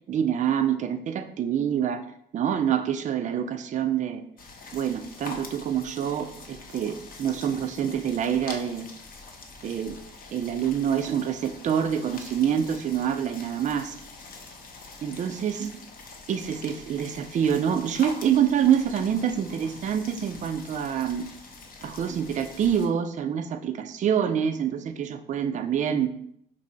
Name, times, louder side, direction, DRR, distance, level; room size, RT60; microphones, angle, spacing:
voice 1, 0.1-2.0 2.3-4.2 4.7-8.9 9.6-10.0 10.3-13.9 15.0-15.7 16.3-21.3 21.8-26.1, right 8 dB, 40° right, 8 dB, 0.4 m, -26 dB
sound 1, 4.4-22.9, left 3 dB, 45° left, 0.7 m, -44 dB
2.6 x 2.6 x 4.2 m, 0.69 s
supercardioid pair, 70°, 20 cm